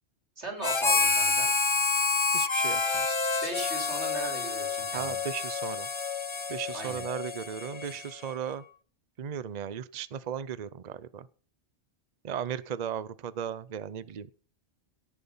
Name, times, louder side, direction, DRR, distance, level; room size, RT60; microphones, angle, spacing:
voice 1, 0.4-1.5 3.4-5.2 6.7-7.0, right 2 dB, 80° right, 3 dB, 4.2 m, -38 dB
Harmonica, 0.6-8.3, left 4 dB, 30° left, 0.7 m, -28 dB
voice 2, 2.3-3.2 4.9-5.9 6.5-8.6 9.2-11.3 12.2-14.3, right 8 dB, 45° right, 17 dB, 0.7 m, -36 dB
17.5 x 8.1 x 5.5 m, 0.41 s
omnidirectional pair, 1.1 m